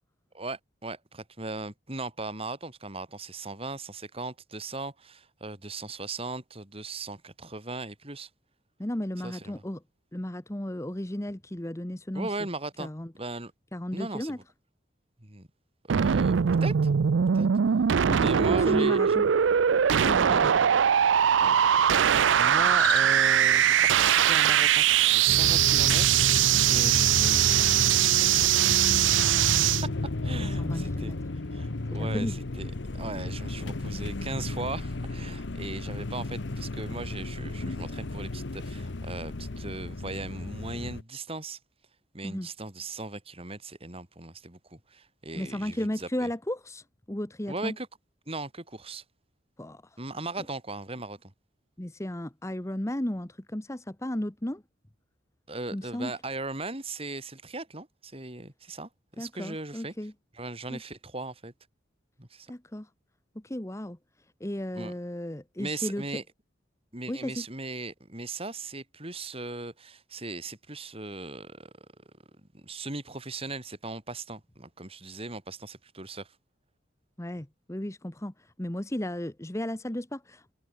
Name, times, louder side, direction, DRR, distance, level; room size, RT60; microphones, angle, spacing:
voice 1, 0.3-8.3 9.2-9.6 12.1-12.9 13.2-13.5 13.9-14.4 15.2-15.5 15.9-16.9 17.3-17.5 18.2-19.2 20.3-20.4 21.4-26.4 26.7-31.2 31.5-41.6 42.1-46.3 47.5-47.9 48.3-49.0 50.0-51.3 55.5-59.9 60.3-61.5 62.2-62.5 64.7-64.9 65.6-66.2 66.9-71.7 72.4-76.3, right 3 dB, 30° right, 3.8 m, -38 dB
voice 2, 8.8-9.8 10.1-12.3 12.8-13.1 13.7-14.4 18.1-19.2 20.1-20.5 30.6-31.2 31.9-32.3 42.2-42.5 45.3-47.7 49.6-49.8 51.8-54.6 55.7-56.1 59.2-60.1 60.7-60.8 62.5-62.9 63.3-64.0 64.4-66.0 67.1-67.4 77.2-78.3 78.6-80.5, left 1 dB, 15° left, 1.0 m, -34 dB
sound 1, 15.9-29.8, right 9 dB, 80° right, 0.5 m, -22 dB
Cricket, 22.6-23.4, left 15 dB, 90° left, 5.6 m, -37 dB
sound 2, 25.3-41.0, left 2 dB, 65° left, 1.0 m, -33 dB
head